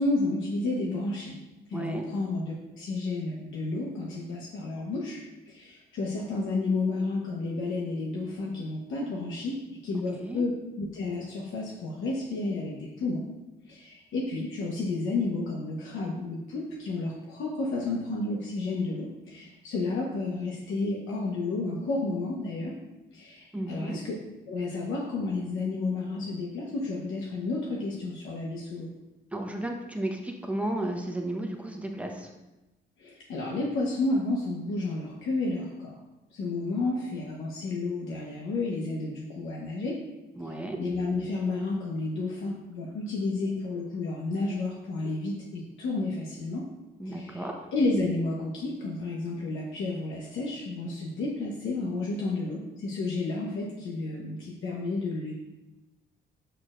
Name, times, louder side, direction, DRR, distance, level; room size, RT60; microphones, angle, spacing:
voice 1, 0.0-1.4 1.7-10.5 10.8-13.2 13.7-22.8 23.1-24.1 24.5-28.9 33.0-36.0 36.3-40.0 40.8-46.7 47.0-47.4 47.7-55.3, left 3 dB, 80° left, -3 dB, 1.1 m, -31 dB
voice 2, 1.7-2.0 10.1-10.4 23.5-24.0 29.3-32.3 40.3-40.8 47.0-47.7, right 1 dB, 5° right, 2 dB, 1.0 m, -33 dB
6.8 x 6.4 x 2.5 m, 1.0 s
cardioid pair, 90°, 20 cm